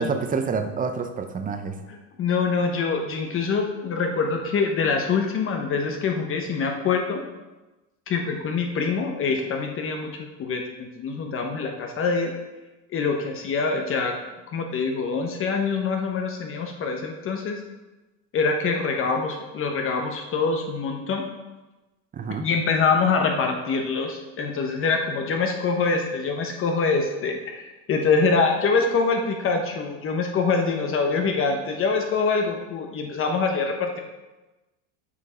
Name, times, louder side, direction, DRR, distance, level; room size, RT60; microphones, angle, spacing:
voice 1, 0.0-1.8 22.1-22.5, right 5 dB, 20° right, 7 dB, 0.7 m, -27 dB
voice 2, 1.9-7.2 8.1-12.3 12.9-14.1 14.5-17.6 18.3-21.2 22.4-34.0, left 4 dB, 35° left, 3 dB, 1.0 m, -25 dB
8.3 x 5.2 x 5.6 m, 1.1 s
supercardioid pair, 130°, 38 cm